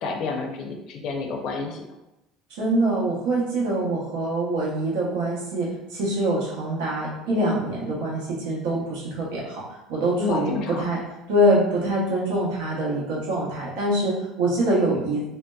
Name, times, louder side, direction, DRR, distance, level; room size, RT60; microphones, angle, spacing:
voice 1, 0.0-1.8 10.2-10.9, left 4 dB, 60° left, 2 dB, 0.4 m, -29 dB
voice 2, 2.5-9.6 9.9-11.0 11.3-15.2, right 1 dB, 90° right, -4 dB, 0.8 m, -24 dB
2.7 x 2.1 x 2.2 m, 0.94 s
supercardioid pair, 115°, 0 cm